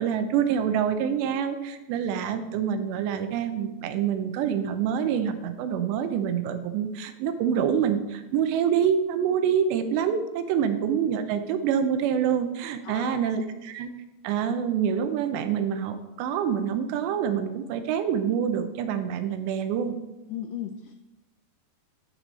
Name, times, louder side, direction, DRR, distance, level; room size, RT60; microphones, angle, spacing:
voice 1, 0.0-13.9 14.2-20.0, right 8 dB, 85° right, 9 dB, 2.9 m, -26 dB
voice 2, 12.8-13.2 20.3-20.9, left 10 dB, 85° left, 7 dB, 2.2 m, -36 dB
11.0 x 6.1 x 4.1 m, 1.1 s
omnidirectional pair, 4.9 m